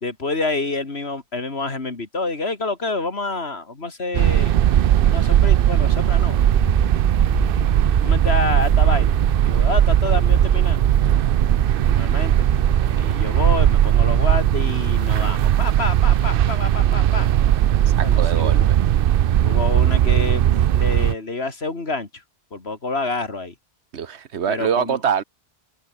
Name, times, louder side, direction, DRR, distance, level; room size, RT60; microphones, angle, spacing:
voice 1, 0.0-4.6 5.1-6.4 8.0-9.2 9.4-10.8 11.9-12.3 13.0-17.3 18.0-18.7 19.4-22.2 22.5-23.5 24.5-25.0, left 3 dB, 70° left, 3.2 m, -28 dB
sound 1, 4.1-21.1, right 11 dB, 60° right, 0.7 m, -18 dB
sound 2, 6.1-14.6, right 3 dB, 30° right, 1.4 m, -29 dB
voice 2, 18.0-18.8 23.9-25.2, right 7 dB, 90° right, 1.4 m, -24 dB
omnidirectional pair, 1.1 m